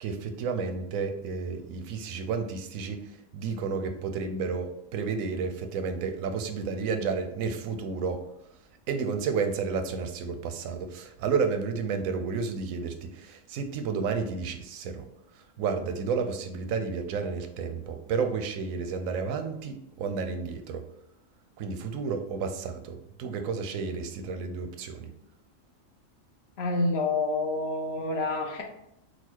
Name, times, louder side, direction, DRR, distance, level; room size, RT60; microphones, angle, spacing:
voice 1, 0.0-3.0 3.3-8.2 8.9-15.1 15.6-20.8 21.6-25.1, right 5 dB, 90° right, 6 dB, 1.0 m, -31 dB
voice 2, 26.6-28.6, left 2 dB, 60° left, 1 dB, 0.9 m, -28 dB
4.0 x 2.3 x 4.4 m, 0.81 s
omnidirectional pair, 1.4 m